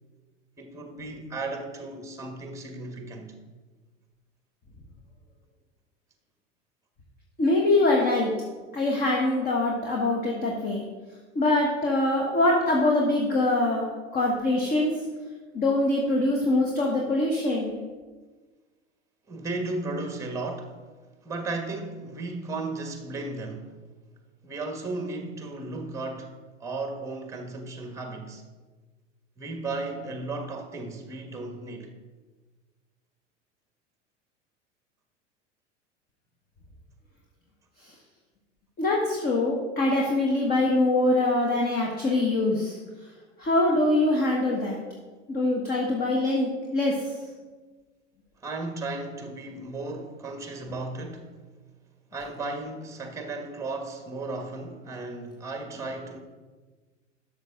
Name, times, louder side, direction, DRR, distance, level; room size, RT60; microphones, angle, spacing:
voice 1, 0.6-3.3 19.3-20.7 21.2-23.7 24.4-26.3 26.6-28.4 29.4-31.9 48.4-51.4 52.1-56.2, right 2 dB, 10° right, 1.2 m, -35 dB
voice 2, 7.4-8.3 8.7-10.8 11.3-13.9 14.1-14.9 15.5-17.8 38.8-42.8 43.4-44.8 45.3-46.9, left 2 dB, 25° left, 1.3 m, -23 dB
12.0 x 6.4 x 3.6 m
figure-of-eight pair, 85°, 37 cm